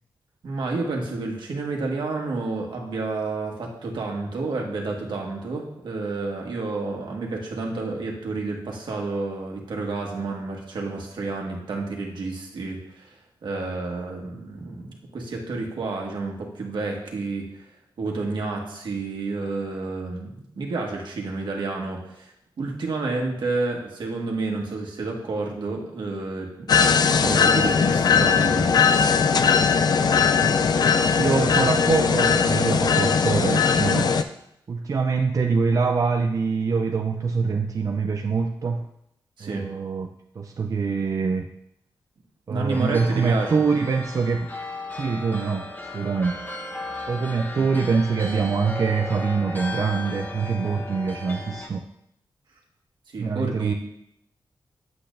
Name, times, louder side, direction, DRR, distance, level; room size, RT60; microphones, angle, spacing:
voice 1, 0.4-13.1 13.4-17.6 18.0-28.7 39.4-39.6 42.5-43.6 47.5-47.7 53.1-53.7, right 3 dB, 75° right, 0 dB, 1.6 m, -30 dB
sound 1, 26.7-34.2, left 6 dB, 55° left, 0.4 m, -19 dB
voice 2, 30.3-34.2 34.7-38.9 39.4-40.1 40.4-41.5 42.5-44.5 44.9-46.4 47.1-51.9 53.2-53.7, right 5 dB, 45° right, 4 dB, 0.4 m, -24 dB
sound 2, 42.7-51.7, left 2 dB, 20° left, 1.1 m, -36 dB
8.5 x 7.8 x 2.6 m, 0.77 s
wide cardioid pair, 135°, 8 cm